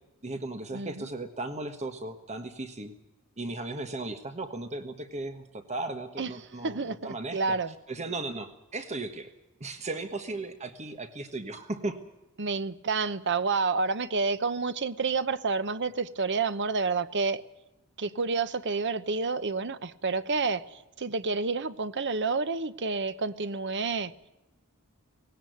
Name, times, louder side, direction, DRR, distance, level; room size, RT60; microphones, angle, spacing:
voice 1, 0.2-2.9 3.4-7.6 7.9-9.3 9.6-12.0, right 2 dB, 30° right, 1.4 m, -36 dB
voice 2, 0.7-1.1 6.2-6.3 6.6-7.7 12.4-17.4 18.0-24.1, right 4 dB, 55° right, 0.9 m, -29 dB
19.0 x 17.5 x 9.3 m
head